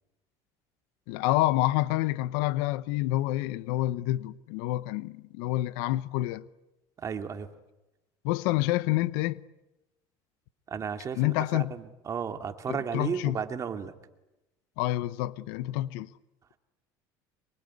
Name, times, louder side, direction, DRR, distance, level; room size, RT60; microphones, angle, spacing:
voice 1, 1.1-6.4 8.2-9.4 11.1-11.7 12.7-13.4 14.8-16.1, left 16 dB, 80° left, 0.9 m, -28 dB
voice 2, 7.0-7.5 10.7-13.9, right 7 dB, 30° right, 2.3 m, -34 dB
24.5 x 22.5 x 9.6 m
cardioid pair, 125°, 10 cm